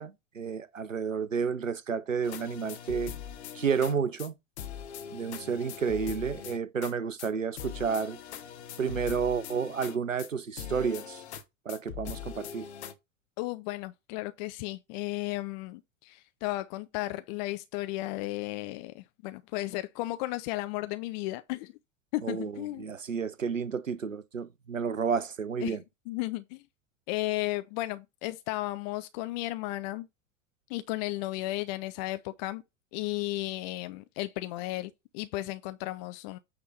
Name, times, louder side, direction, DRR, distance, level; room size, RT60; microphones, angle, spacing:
voice 1, 0.0-3.1 3.5-4.3 5.1-8.2 8.8-11.2 11.7-12.7 22.2-25.8, right 6 dB, 90° right, 0.6 m, -31 dB
sound 1, 2.2-3.9 4.2-4.3 4.6-6.9 7.2-7.3 7.6-10.3 10.6-11.4 11.7-12.9, left 9 dB, 60° left, 1.2 m, -41 dB
voice 2, 13.4-21.7 22.1-22.9 25.6-25.8 26.1-26.6 27.1-30.1 30.7-32.6 32.9-36.4, left 18 dB, 35° left, 0.5 m, -34 dB
8.8 x 3.5 x 5.3 m
figure-of-eight pair, 85°, 38 cm